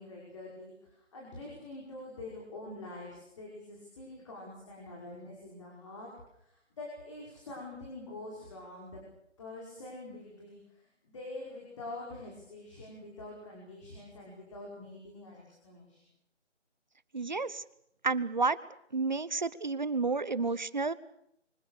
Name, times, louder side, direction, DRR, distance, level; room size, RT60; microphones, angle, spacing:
voice 1, 0.0-6.1 6.4-9.0 9.4-16.0, left 2 dB, 25° left, -3 dB, 5.3 m, -45 dB
voice 2, 17.1-17.6 18.0-18.6 18.9-20.9, right 4 dB, 40° right, 18 dB, 0.9 m, -30 dB
24.5 x 23.5 x 6.7 m, 0.75 s
figure-of-eight pair, 170°, 36 cm